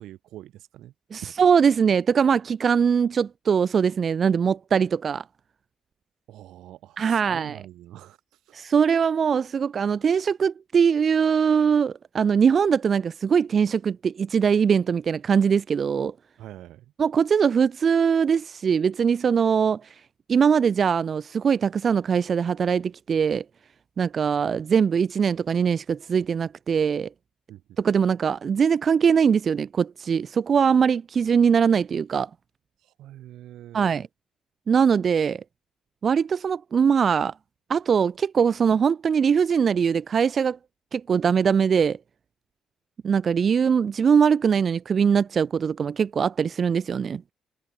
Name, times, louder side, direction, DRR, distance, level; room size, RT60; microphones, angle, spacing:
voice 1, 0.0-1.5 6.3-8.6 16.4-16.9 27.5-27.6 32.8-33.9, right 14 dB, 85° right, 2.1 m, -44 dB
voice 2, 1.1-5.2 7.0-7.6 8.5-16.1 17.0-20.0 20.3-23.4 24.0-27.1 27.8-32.3 33.7-34.1 34.7-35.4 36.0-37.3 37.7-40.6 40.9-42.0 43.0-47.2, right 6 dB, 50° right, 0.4 m, -22 dB
cardioid pair, 90°, 0 cm